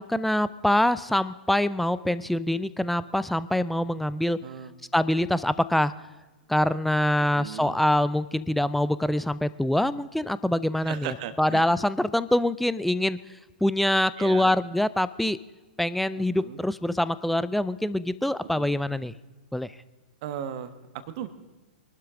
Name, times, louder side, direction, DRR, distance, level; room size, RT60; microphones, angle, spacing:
voice 1, 0.0-4.4 4.9-5.9 6.5-13.2 13.6-15.4 15.8-19.1 19.5-19.7, left 1 dB, ahead, 16 dB, 0.5 m, -25 dB
voice 2, 4.4-4.8 7.3-7.7 10.8-11.6 14.2-14.5 16.2-16.6 18.5-18.8 20.2-21.3, right 10 dB, 45° right, 11 dB, 1.4 m, -37 dB
23.5 x 12.0 x 3.8 m, 1.2 s
figure-of-eight pair, 110°, 5 cm